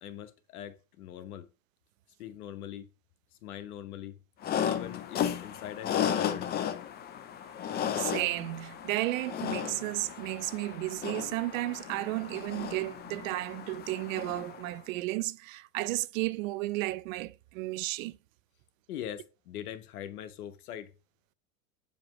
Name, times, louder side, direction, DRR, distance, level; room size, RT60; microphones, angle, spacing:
voice 1, 0.0-1.5 2.2-2.9 3.4-4.1 4.6-6.5 18.9-20.9, left 10 dB, 80° left, 1.1 m, -42 dB
sound 1, 4.4-14.7, left 9 dB, 25° left, 0.5 m, -34 dB
voice 2, 8.0-18.2, right 19 dB, 65° right, 0.5 m, -33 dB
7.1 x 3.1 x 5.2 m
hypercardioid pair, 115°, 44 cm